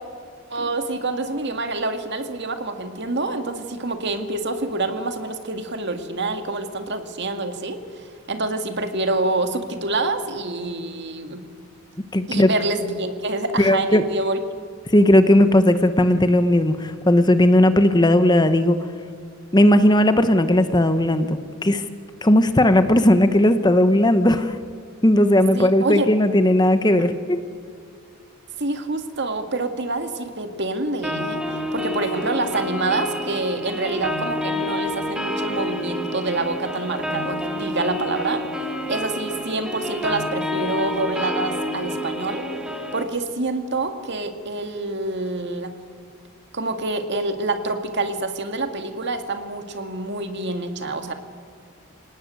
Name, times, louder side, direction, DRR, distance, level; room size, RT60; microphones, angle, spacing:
voice 1, 0.5-11.5 12.3-14.4 25.5-26.1 28.6-31.5 31.7-38.4 38.9-42.5 42.9-45.8 46.5-51.1, right 2 dB, 55° right, 7 dB, 2.1 m, -27 dB
voice 2, 12.1-12.5 13.6-14.0 14.9-18.8 19.5-21.8 22.2-24.6 25.0-27.4, left 1 dB, 20° left, 10 dB, 1.0 m, -16 dB
sound 1, 31.0-43.0, left 1 dB, 5° right, 2.5 m, -28 dB
27.5 x 18.5 x 9.5 m, 2.1 s
head